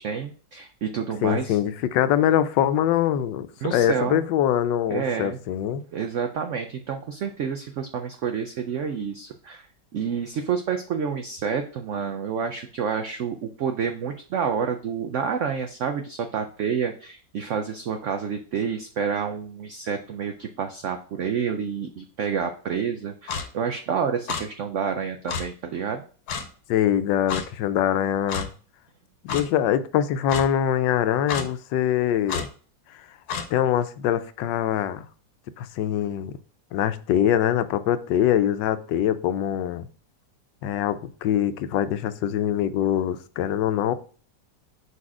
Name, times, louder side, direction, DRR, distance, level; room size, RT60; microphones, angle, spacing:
voice 1, 0.0-1.6 3.6-4.2 4.9-5.4 5.9-9.7 9.9-26.0, right 6 dB, 85° right, 7 dB, 0.6 m, -29 dB
voice 2, 1.2-5.8 26.7-28.5 29.2-32.5 33.5-35.1 35.6-36.3 36.7-39.8 40.6-43.9, left 10 dB, 85° left, 12 dB, 1.2 m, -23 dB
Clock, 23.3-23.5 24.3-24.4 25.3-25.4 26.3-26.5 27.3-27.4 28.3-28.5 29.3-29.4 30.3-30.4 31.3-31.5 32.3-32.5 33.3-33.5, left 5 dB, 65° left, 1.3 m, -29 dB
5.0 x 4.2 x 4.8 m, 0.41 s
omnidirectional pair, 1.9 m